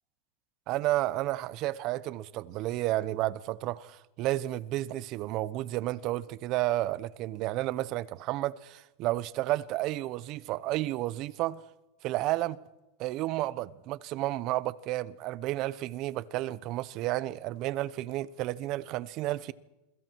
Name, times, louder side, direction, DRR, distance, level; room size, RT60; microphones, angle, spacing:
voice 1, 0.7-11.6 12.0-12.6 13.0-19.5, right 16 dB, 45° right, 0.9 m, -31 dB
28.0 x 23.0 x 4.7 m
supercardioid pair, 145°, 0 cm